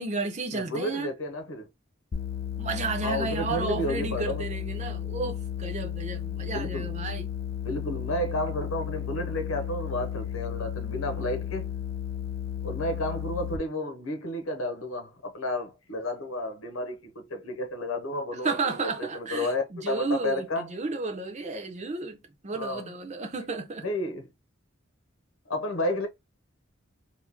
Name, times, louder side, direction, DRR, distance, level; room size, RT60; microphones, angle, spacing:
voice 1, 0.0-1.1 2.6-7.3 18.4-22.2 22.4-23.8, right 3 dB, 35° right, 0.7 m, -32 dB
voice 2, 0.5-1.7 3.0-4.5 6.5-6.9 7.6-11.7 12.6-20.7 22.5-22.9 23.8-24.3 25.5-26.1, left 1 dB, 85° left, 0.9 m, -31 dB
sound 1, 2.1-13.6, left 9 dB, 50° left, 0.5 m, -34 dB
3.6 x 2.8 x 2.9 m
head